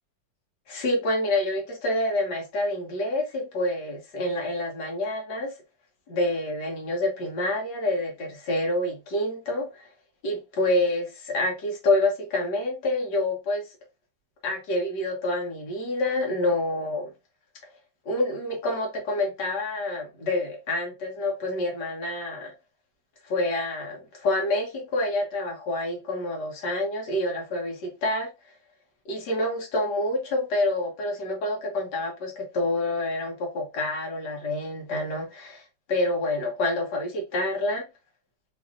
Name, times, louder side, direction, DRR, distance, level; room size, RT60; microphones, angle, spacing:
voice 1, 0.7-5.5 6.1-9.9 10.2-13.7 14.4-17.1 18.1-22.5 23.2-28.3 29.1-35.6 35.9-37.9, left 1 dB, 70° left, 1.8 m, -27 dB
4.7 x 2.6 x 2.5 m
omnidirectional pair, 2.0 m